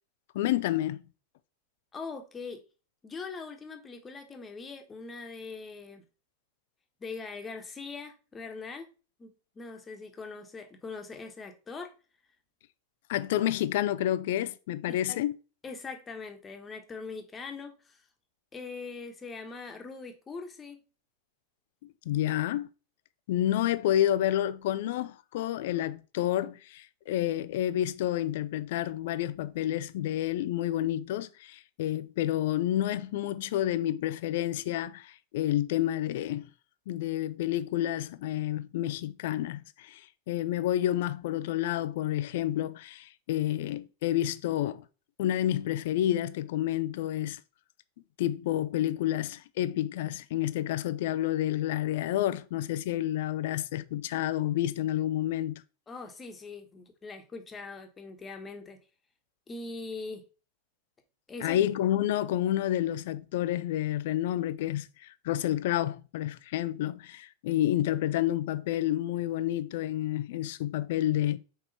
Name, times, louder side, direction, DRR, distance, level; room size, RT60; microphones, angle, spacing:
voice 1, 0.3-1.0 13.1-15.4 21.8-22.7 23.3-36.5 36.9-44.9 45.2-47.4 48.2-55.6 61.4-71.4, left 12 dB, 55° left, 0.5 m, -29 dB
voice 2, 1.9-2.6 3.0-6.0 7.0-8.9 9.2-11.9 14.9-15.2 15.6-18.0 18.5-20.8 55.9-58.8 59.5-60.2 61.3-61.6, left 4 dB, 20° left, 1.4 m, -41 dB
6.5 x 4.9 x 4.2 m
figure-of-eight pair, 90°, 0 cm